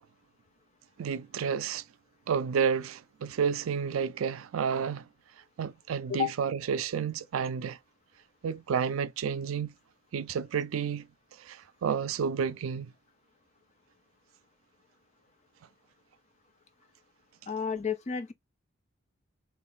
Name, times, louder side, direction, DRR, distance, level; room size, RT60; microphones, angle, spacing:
voice 1, 1.0-1.8 2.3-5.0 5.6-7.8 8.4-9.7 10.1-11.1 11.4-12.9, right 6 dB, 80° right, 0.4 m, -30 dB
voice 2, 17.5-18.3, left 7 dB, 35° left, 0.4 m, -31 dB
3.2 x 2.4 x 3.7 m
head